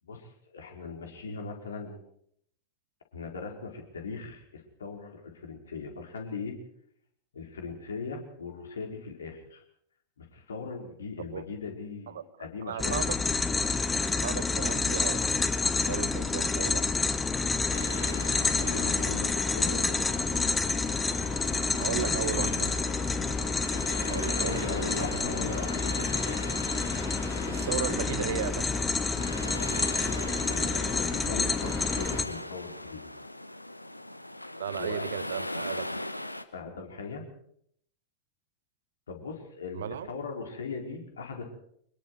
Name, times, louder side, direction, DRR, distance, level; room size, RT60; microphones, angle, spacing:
voice 1, 0.0-2.0 3.1-6.5 7.3-9.6 10.2-13.0 18.3-20.0 21.6-22.1 22.4-22.7 24.1-26.4 30.1-33.1 34.8-35.0 36.5-37.2 39.1-41.4, left 4 dB, 70° left, 2 dB, 4.9 m, -39 dB
voice 2, 12.6-13.1 14.2-15.2 15.7-16.9 21.7-22.7 24.1-25.1 27.5-28.9 34.6-35.9 39.7-40.1, right 10 dB, 60° right, 14 dB, 1.4 m, -35 dB
sound 1, 12.8-32.2, left 4 dB, 15° left, 1.7 m, -28 dB
sound 2, 17.7-36.4, left 1 dB, 85° left, 1.1 m, -40 dB
25.0 x 22.0 x 4.9 m, 0.69 s
figure-of-eight pair, 90°, 0 cm